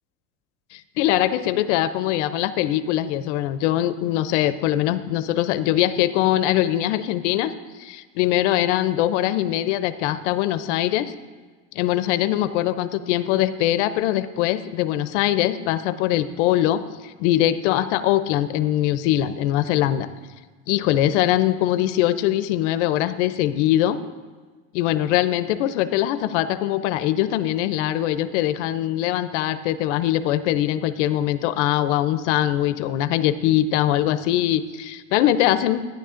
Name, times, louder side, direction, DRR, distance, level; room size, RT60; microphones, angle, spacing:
voice 1, 0.7-7.5 7.8-11.1 11.8-20.1 20.7-24.0 24.7-35.8, left 13 dB, 75° left, 13 dB, 0.5 m, -22 dB
12.5 x 10.0 x 2.5 m, 1.4 s
cardioid pair, 180°, 35 cm